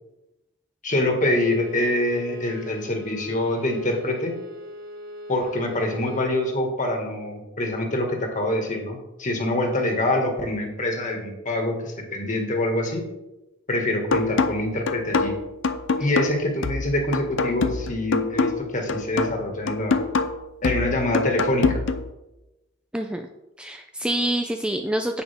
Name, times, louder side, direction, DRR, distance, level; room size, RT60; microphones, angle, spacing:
voice 1, 0.8-4.3 5.3-13.0 13.7-15.4 16.0-20.1 20.6-21.8, left 1 dB, 35° left, 2 dB, 2.0 m, -25 dB
Bowed string instrument, 1.3-6.3, left 2 dB, 65° right, 1.1 m, -40 dB
sound 1, 14.1-22.1, left 4 dB, 60° left, 0.6 m, -25 dB
voice 2, 22.9-23.3 23.6-25.2, right 1 dB, 5° right, 5 dB, 0.4 m, -26 dB
10.0 x 8.5 x 3.6 m, 0.97 s
head